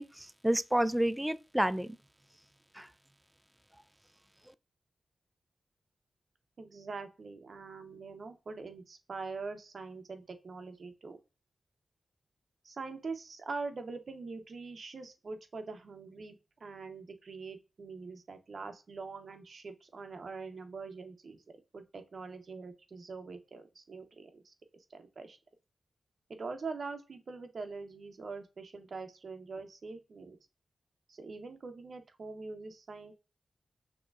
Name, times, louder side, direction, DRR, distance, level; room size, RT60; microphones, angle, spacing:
voice 1, 0.0-2.0 2.8-2.9, right 1 dB, 10° right, 0.3 m, -30 dB
voice 2, 6.6-11.2 12.6-21.4 21.7-24.5 24.9-25.4 26.3-30.4 31.1-33.1, right 4 dB, 65° right, 0.7 m, -43 dB
6.2 x 2.9 x 2.4 m
cardioid pair, 70°, 0 cm